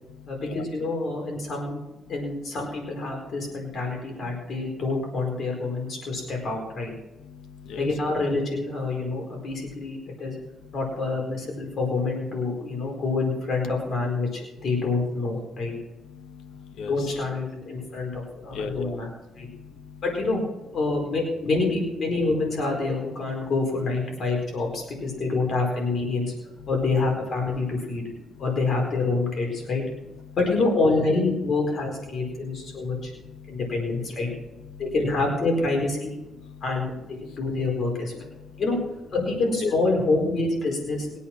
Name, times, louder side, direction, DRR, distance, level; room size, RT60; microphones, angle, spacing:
voice 1, 0.3-1.8 2.1-6.9 7.8-10.3 10.7-15.7 16.9-19.1 19.4-19.5 20.0-20.4 20.7-26.3 26.7-28.0 28.4-29.8 30.4-33.1 33.5-34.3 34.8-36.1 36.6-36.9 37.3-38.1 38.6-38.8 39.1-41.2, left 3 dB, 55° left, 1 dB, 4.5 m, -26 dB
voice 2, 7.2-7.9 16.1-16.9 18.5-19.0 19.4-20.0 32.8-33.6 34.7-34.8 36.4-36.6 37.3-37.4 38.5-38.6 39.6-39.7, left 5 dB, 75° left, 8 dB, 1.4 m, -37 dB
21.5 x 8.5 x 6.0 m, 0.97 s
cardioid pair, 90°, 0 cm